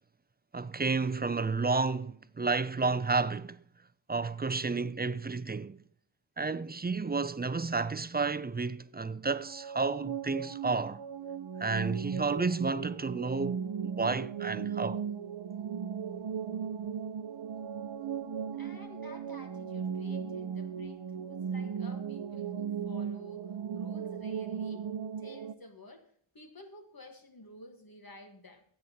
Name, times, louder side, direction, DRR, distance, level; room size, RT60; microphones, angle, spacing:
voice 1, 0.5-3.6 4.1-5.8 6.4-11.0 11.6-15.0, right 4 dB, 25° right, 0.3 m, -31 dB
sound 1, 9.3-25.5, right 7 dB, 70° right, 0.6 m, -37 dB
voice 2, 18.5-24.9 25.2-28.6, left 2 dB, 45° left, 1.3 m, -52 dB
18.0 x 7.9 x 2.8 m
wide cardioid pair, 50°, 47 cm